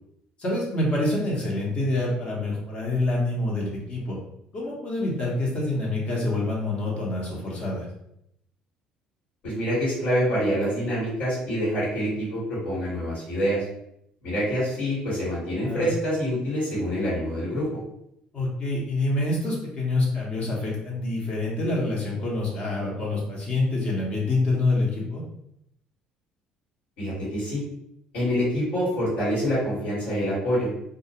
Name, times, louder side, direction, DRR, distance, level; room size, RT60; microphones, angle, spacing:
voice 1, 0.4-4.2 4.5-7.9 15.6-15.9 18.3-25.2, left 2 dB, 45° left, -4 dB, 0.8 m, -26 dB
voice 2, 9.4-13.6 14.2-17.7 27.0-27.6 28.1-30.7, equal, 85° left, -11 dB, 1.4 m, -26 dB
2.4 x 2.2 x 2.8 m, 0.76 s
supercardioid pair, 85°, 3 cm